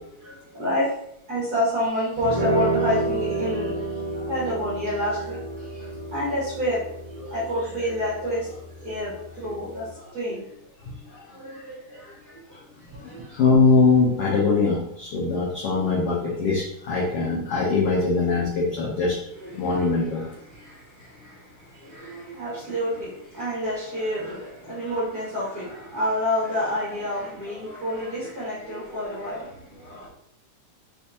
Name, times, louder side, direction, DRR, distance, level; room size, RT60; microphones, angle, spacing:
voice 1, 0.5-0.9 1.3-3.8 4.1-5.4 6.1-6.8 7.1-8.5 8.8-10.4 11.3-12.1 13.1-13.2 19.4-19.8 20.1-20.3 21.9-29.5 29.8-30.1, equal, 45° right, -9 dB, 1.3 m, -28 dB
sound 1, 2.2-9.9, right 2 dB, 70° right, 1.4 m, -30 dB
voice 2, 13.0-19.2 19.5-20.3, left 4 dB, 75° left, -5 dB, 1.3 m, -22 dB
5.2 x 3.5 x 2.8 m, 0.72 s
omnidirectional pair, 3.7 m